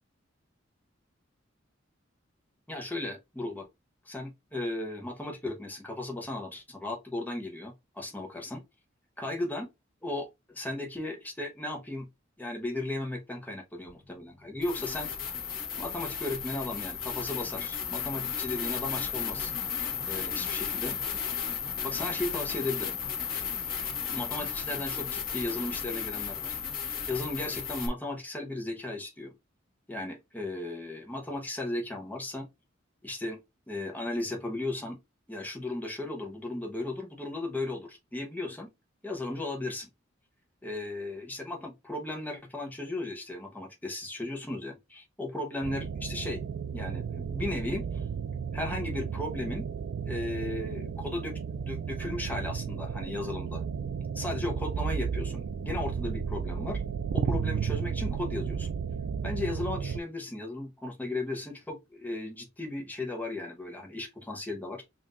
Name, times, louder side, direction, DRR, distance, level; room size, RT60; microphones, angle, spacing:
voice 1, 2.7-3.7 4.1-8.6 9.2-9.7 10.0-12.1 12.4-15.1 15.8-19.5 20.1-21.0 21.8-23.0 24.1-26.5 27.1-29.3 29.9-32.5 33.0-33.4 33.7-35.0 35.3-38.7 39.0-39.9 40.6-46.4 46.7-48.0 48.5-49.6 50.0-53.6 54.1-56.8 57.1-58.7 59.2-64.8, left 2 dB, 10° left, 0.9 m, -36 dB
sound 1, 13.9-14.0 14.6-27.9, left 7 dB, 50° left, 1.3 m, -34 dB
sound 2, 45.6-60.0, right 6 dB, 65° right, 0.3 m, -33 dB
5.4 x 2.7 x 2.5 m
head